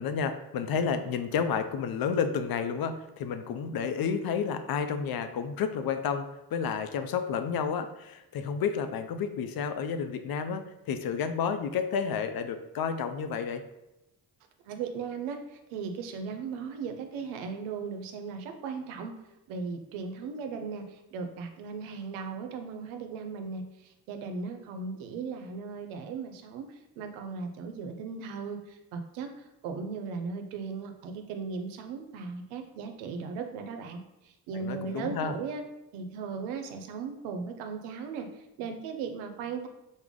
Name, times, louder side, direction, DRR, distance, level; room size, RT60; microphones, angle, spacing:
voice 1, 0.0-13.6 34.5-35.3, left 6 dB, 50° left, 9 dB, 0.5 m, -31 dB
voice 2, 14.7-19.2 19.5-34.0 34.2-35.6 35.9-38.3 38.6-39.7, right 5 dB, 80° right, 6 dB, 0.6 m, -37 dB
3.4 x 2.1 x 3.7 m, 0.92 s
hypercardioid pair, 40°, 48 cm